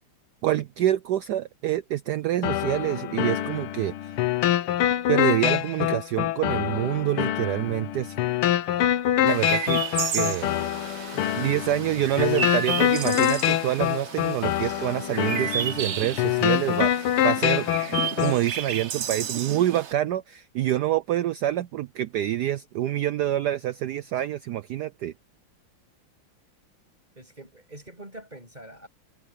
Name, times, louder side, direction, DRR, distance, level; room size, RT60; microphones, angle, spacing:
voice 1, 0.4-4.1 5.1-8.2 8.7-8.8 9.2-9.8 10.1-10.5 10.8-11.1 11.4-17.7 18.2-25.1, right 13 dB, 80° right, 0.9 m, -27 dB
sound 1, 2.4-18.4, left 12 dB, 85° left, 1.8 m, -25 dB
Chirp tweet, 9.3-19.9, right 8 dB, 55° right, 0.8 m, -32 dB
voice 2, 11.1-11.5 27.2-28.9, right 1 dB, 20° right, 7.8 m, -45 dB
omnidirectional pair, 2.3 m